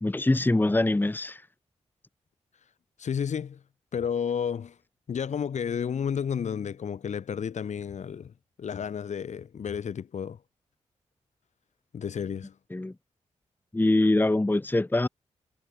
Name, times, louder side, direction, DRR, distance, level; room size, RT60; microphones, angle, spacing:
voice 1, 0.0-1.4 12.7-12.9 13.7-15.1, left 2 dB, 15° left, 1.1 m, -23 dB
voice 2, 3.0-3.6 3.9-4.7 5.1-8.3 8.6-10.4 11.9-12.5, left 7 dB, 75° left, 3.5 m, -31 dB
cardioid pair, 60°, 12 cm